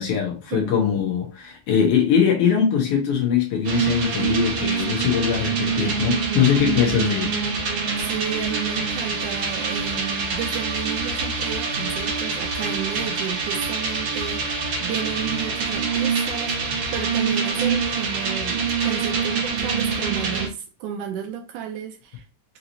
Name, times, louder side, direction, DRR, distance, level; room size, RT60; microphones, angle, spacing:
voice 1, 0.0-7.3, left 7 dB, 80° left, 1.3 m, -21 dB
sound 1, 3.6-20.5, right 5 dB, 50° right, 2.0 m, -25 dB
voice 2, 4.9-5.2 7.8-16.6 16.9-22.2, right 9 dB, 80° right, 1.9 m, -32 dB
5.5 x 2.9 x 2.6 m
omnidirectional pair, 4.0 m